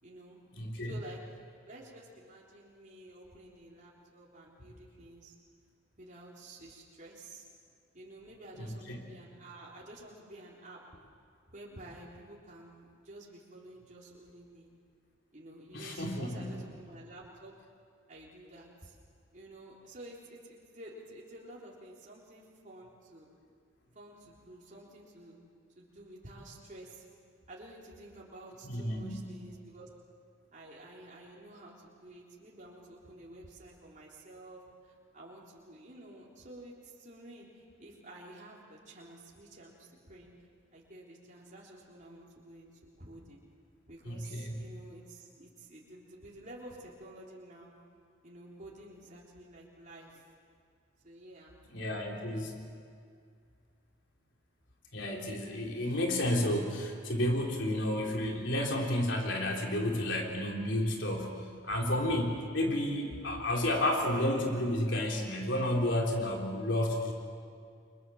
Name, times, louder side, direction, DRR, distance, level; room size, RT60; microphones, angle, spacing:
voice 1, 0.0-0.4 0.8-1.2 1.7-5.3 6.0-7.5 7.9-10.8 11.5-14.7 15.3-17.5 18.1-19.0 19.3-23.3 23.9-25.4 25.8-27.0 27.5-29.9 30.5-40.3 40.7-42.7 43.0-43.4 43.9-47.7 48.2-50.3 51.0-51.6, right 1 dB, 40° right, -4 dB, 3.7 m, -51 dB
voice 2, 0.5-0.9 8.6-9.0 15.7-16.6 28.6-29.3 44.1-44.6 51.7-52.6 54.9-67.1, left 1 dB, 65° left, 0 dB, 3.8 m, -31 dB
30.0 x 24.0 x 7.2 m, 2.2 s
head